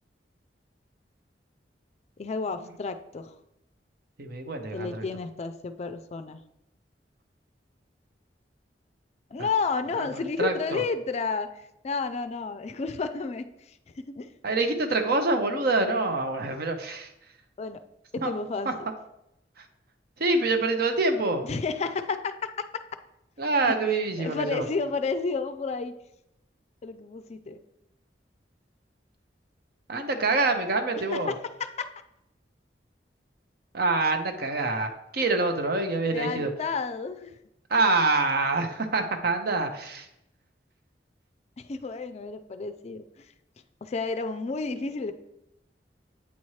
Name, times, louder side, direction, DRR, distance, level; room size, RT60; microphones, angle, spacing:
voice 1, 2.2-3.3 4.7-6.4 9.3-11.5 11.8-14.3 17.6-17.8 18.1-18.7 21.4-22.8 23.6-23.7 24.2-25.9 26.8-27.6 31.1-31.9 36.1-37.4 41.6-43.3 43.8-45.1, left 4 dB, 40° left, 10 dB, 0.4 m, -31 dB
voice 2, 4.2-5.1 9.4-9.5 9.9-10.8 14.4-17.1 18.2-18.3 18.7-18.8 19.6-19.7 20.2-21.4 23.4-24.7 29.9-31.3 33.7-36.5 37.7-40.1, right 3 dB, 60° right, 5 dB, 0.8 m, -26 dB
8.5 x 4.3 x 3.1 m, 0.83 s
head